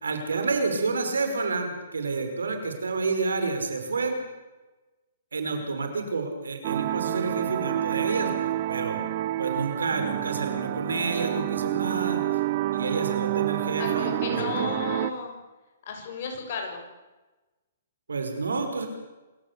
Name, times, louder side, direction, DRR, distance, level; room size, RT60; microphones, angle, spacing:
voice 1, 0.0-4.2 5.3-9.0 9.4-12.2 12.7-14.1 14.4-14.7 18.1-18.9, right 4 dB, 90° right, 6 dB, 5.3 m, -29 dB
sound 1, 6.6-15.1, right 15 dB, 45° right, 1.1 m, -29 dB
voice 2, 13.8-15.4 15.9-16.9, left 5 dB, 55° left, 3 dB, 7.3 m, -33 dB
27.0 x 14.5 x 8.3 m, 1.1 s
hypercardioid pair, 140°, 0 cm